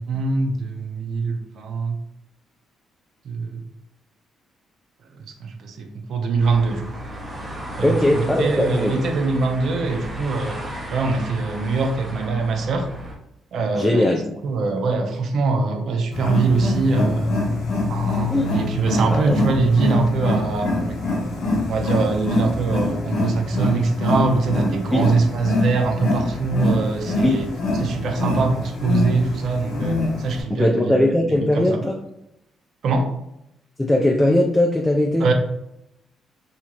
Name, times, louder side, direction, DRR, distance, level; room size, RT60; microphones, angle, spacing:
voice 1, 0.0-2.0 3.3-3.6 5.2-6.9 7.8-10.6 10.9-12.9 13.5-17.4 17.9-21.0 21.7-27.4 27.8-31.0 31.3-31.7 32.8-33.1 35.2-35.3, right 4 dB, 65° right, 4 dB, 0.5 m, -23 dB
sound 1, 6.4-13.1, equal, 30° right, 0.8 m, -34 dB
voice 2, 7.8-9.0 13.7-14.2 18.3-18.5 19.1-19.4 24.9-25.1 27.2-27.4 30.5-32.0 33.8-35.3, left 1 dB, 10° left, 1 dB, 0.3 m, -19 dB
Wild animals, 16.1-30.4, left 2 dB, 75° left, 0.8 m, -24 dB
2.8 x 2.4 x 2.8 m, 0.81 s
cardioid pair, 90°, 0 cm